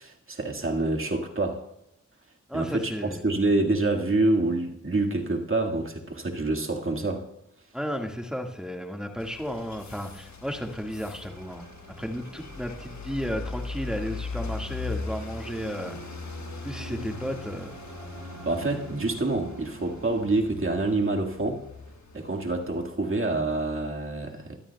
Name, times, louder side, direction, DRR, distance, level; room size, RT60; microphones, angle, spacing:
voice 1, 0.0-1.6 2.5-7.2 18.4-21.6 22.1-24.6, right 2 dB, 45° right, 1 dB, 1.9 m, -27 dB
voice 2, 2.5-3.2 7.7-11.6 12.0-16.0 16.6-17.7, equal, ahead, 2 dB, 1.8 m, -33 dB
sound 1, 9.2-22.9, left 4 dB, 65° left, 1.4 m, -40 dB
sound 2, 11.2-20.3, right 5 dB, 85° right, 1.1 m, -47 dB
20.5 x 12.5 x 2.3 m, 0.81 s
cardioid pair, 45°, 30 cm